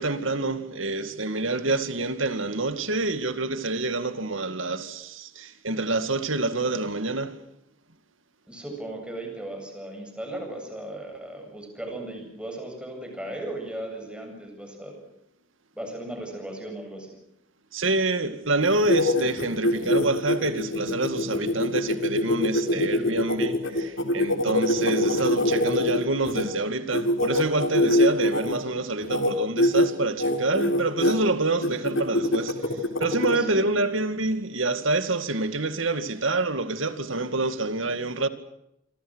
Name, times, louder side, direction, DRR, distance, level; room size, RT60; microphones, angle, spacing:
voice 1, 0.0-7.4 17.7-38.3, right 2 dB, 75° right, 2.3 m, -27 dB
voice 2, 8.5-14.9 15.7-17.2 22.7-23.2 33.3-33.7, right 1 dB, 5° right, 7.9 m, -36 dB
sound 1, 18.6-26.4 26.9-28.6 29.0-29.3 29.6-29.9 30.2-31.2 31.6-33.4, left 1 dB, 70° left, 3.8 m, -23 dB
27.0 x 26.0 x 6.4 m
head